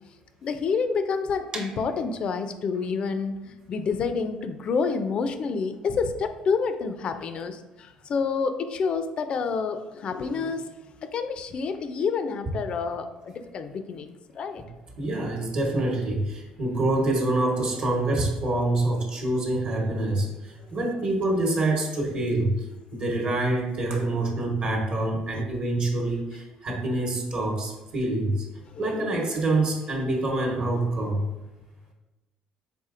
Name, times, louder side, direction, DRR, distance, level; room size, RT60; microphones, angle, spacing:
voice 1, 0.4-10.7 11.0-14.6 28.7-29.3, left 5 dB, 45° left, 9 dB, 0.4 m, -28 dB
sound 1, 1.5-7.3, right 2 dB, 30° right, 0.6 m, -45 dB
voice 2, 15.0-28.5 28.8-31.3, right 2 dB, 45° right, 0 dB, 1.0 m, -26 dB
4.2 x 3.6 x 2.5 m, 1.1 s
cardioid pair, 120°, 2 cm